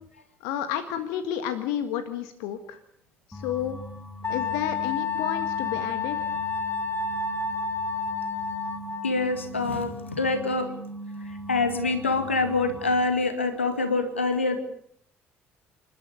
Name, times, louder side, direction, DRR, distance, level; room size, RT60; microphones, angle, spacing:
voice 1, 0.4-2.8 3.3-3.8 4.3-6.3, left 10 dB, 65° left, 9 dB, 1.7 m, -31 dB
sound 1, 3.3-13.0, right 1 dB, 10° left, 5.7 m, -41 dB
Wind instrument woodwind instrument, 4.2-9.2, left 5 dB, 30° left, 4.4 m, -30 dB
voice 2, 9.0-10.7 11.3-14.6, left 3 dB, 85° left, 8 dB, 2.2 m, -25 dB
28.0 x 13.5 x 9.7 m, 0.68 s
figure-of-eight pair, 50°, 6 cm